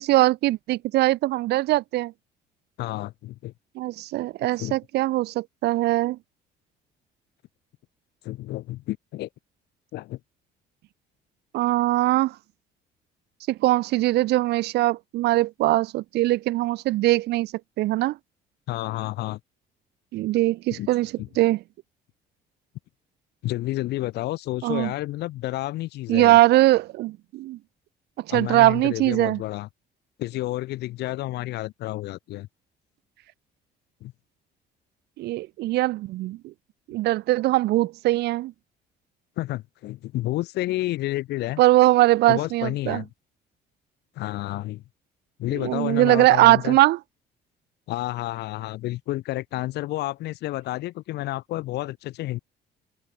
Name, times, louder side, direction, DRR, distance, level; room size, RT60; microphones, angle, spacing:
voice 1, 0.0-2.1 3.8-6.2 11.5-12.3 13.5-17.5 17.8-18.2 20.1-21.1 21.4-21.6 24.6-24.9 26.1-27.6 28.3-29.4 35.2-36.4 36.9-38.5 41.6-43.0 45.6-47.0, right 17 dB, 80° right, 1.2 m, -21 dB
voice 2, 2.8-3.5 4.6-4.8 8.2-9.3 9.9-10.2 18.7-19.4 20.7-20.9 21.2-21.3 23.4-26.4 28.3-29.7 30.2-32.5 34.0-34.1 39.4-41.6 42.3-43.1 44.2-44.8 45.4-46.8 47.9-52.4, left 16 dB, 80° left, 7.0 m, -30 dB
cardioid pair, 110°, 17 cm